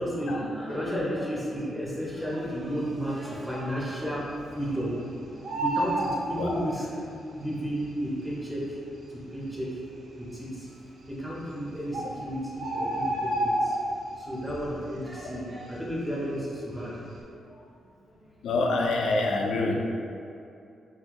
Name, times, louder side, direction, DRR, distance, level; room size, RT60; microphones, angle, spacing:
voice 1, 0.0-6.9 7.3-8.8 9.1-9.8 10.2-13.7 14.2-17.6 18.1-18.2, equal, 5° right, -6 dB, 0.9 m, -33 dB
Bird, 2.5-3.1 3.5-3.6 3.8-5.0 5.3-7.1 8.0-8.1 8.7-8.8 9.0-9.1 9.7-10.2 11.2-11.3 11.6-11.7 11.9-14.2 14.6-14.9 15.2-16.6 16.9-17.2, right 1 dB, 70° right, 0.6 m, -30 dB
voice 2, 18.4-19.7, left 3 dB, 85° left, 0 dB, 0.5 m, -26 dB
5.6 x 2.7 x 3.0 m, 2.6 s
wide cardioid pair, 160°, 0 cm